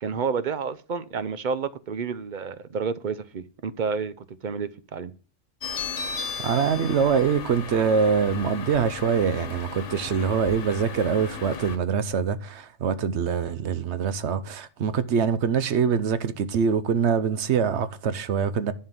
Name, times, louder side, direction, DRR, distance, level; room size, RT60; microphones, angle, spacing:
voice 1, 0.0-4.1 4.4-5.1, right 5 dB, 50° right, 0.7 m, -30 dB
sound 1, 5.6-11.8, left 5 dB, 85° left, 1.3 m, -35 dB
voice 2, 6.4-18.7, right 6 dB, 70° right, 1.0 m, -24 dB
11.0 x 4.5 x 7.2 m
omnidirectional pair, 1.2 m